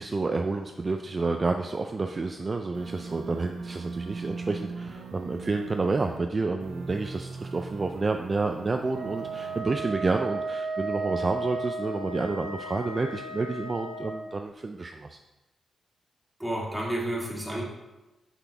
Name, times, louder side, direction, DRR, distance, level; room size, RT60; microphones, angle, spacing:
voice 1, 0.0-15.2, right 3 dB, 35° right, 5 dB, 0.4 m, -29 dB
sound 1, 2.7-6.2 6.6-9.6, right 4 dB, 85° right, 0.6 m, -40 dB
Wind instrument woodwind instrument, 8.9-14.2, right 3 dB, 65° right, 1.4 m, -34 dB
voice 2, 16.4-17.6, right 1 dB, 5° right, -4 dB, 2.1 m, -30 dB
6.0 x 5.9 x 3.4 m, 1.1 s
cardioid pair, 80°, 0 cm